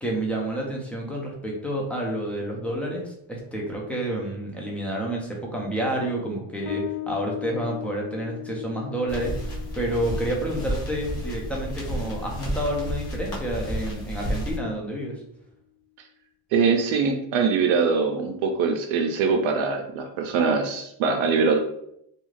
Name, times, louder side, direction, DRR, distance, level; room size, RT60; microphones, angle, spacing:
voice 1, 0.0-15.2, right 1 dB, 5° left, -2 dB, 0.3 m, -29 dB
Bass guitar, 6.7-13.8, left 16 dB, 85° left, 0.7 m, -39 dB
sound 1, 9.1-14.6, equal, 30° left, 0.8 m, -31 dB
voice 2, 16.5-21.6, right 5 dB, 75° right, 4 dB, 0.5 m, -23 dB
2.4 x 2.3 x 3.1 m, 0.74 s
cardioid pair, 135°, 48 cm